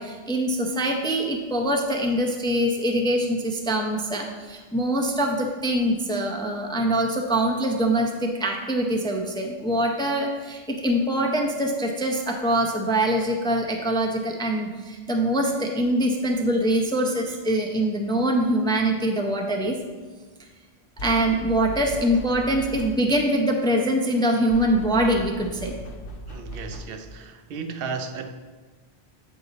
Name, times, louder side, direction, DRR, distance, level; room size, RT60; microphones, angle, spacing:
voice 1, 0.0-19.8 21.0-25.7, right 1 dB, 5° left, 2 dB, 0.3 m, -24 dB
sound 1, 21.0-23.2 24.5-27.2, equal, 65° left, 0.8 m, -38 dB
voice 2, 26.3-28.3, right 5 dB, 65° right, 7 dB, 0.7 m, -34 dB
8.2 x 4.0 x 3.9 m, 1.4 s
omnidirectional pair, 1.1 m